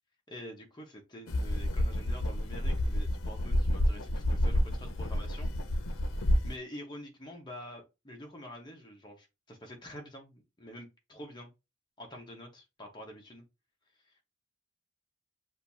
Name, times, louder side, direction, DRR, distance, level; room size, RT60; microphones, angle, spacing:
voice 1, 0.3-5.5 6.4-11.5 12.0-13.4 14.0-14.2, equal, 20° left, 1.1 m, -47 dB
sound 1, 1.3-6.5, left 1 dB, 75° left, 0.7 m, -29 dB
6.6 x 2.7 x 2.7 m
head